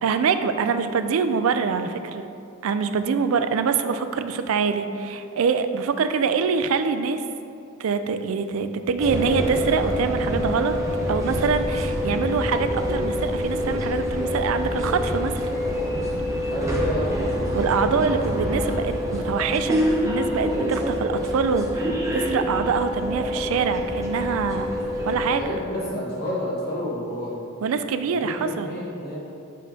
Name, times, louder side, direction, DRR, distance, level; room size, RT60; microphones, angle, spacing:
voice 1, 0.0-2.3 2.6-7.2 7.8-10.7 11.1-15.4 17.5-24.7 25.0-25.4 27.6-28.7, right 5 dB, 70° right, 9 dB, 0.4 m, -24 dB
sound 1, 9.0-25.4, equal, 15° right, 0.8 m, -26 dB
voice 2, 16.5-17.1 25.3-27.3 28.2-29.2, equal, 45° left, -7 dB, 1.4 m, -30 dB
7.3 x 5.5 x 2.8 m, 2.6 s
head